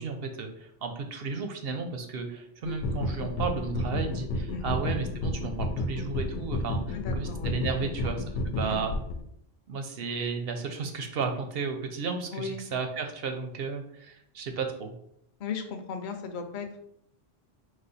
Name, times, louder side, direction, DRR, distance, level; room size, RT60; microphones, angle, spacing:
voice 1, 0.0-8.9 9.7-15.0, right 5 dB, 65° right, 5 dB, 0.7 m, -33 dB
sound 1, 2.6-9.2, left 2 dB, 75° left, 0.9 m, -31 dB
voice 2, 6.9-7.6 7.8-8.1 8.6-8.9 12.3-12.6 15.4-16.8, left 4 dB, 55° left, 5 dB, 0.6 m, -37 dB
4.8 x 2.1 x 4.0 m, 0.71 s
omnidirectional pair, 1.2 m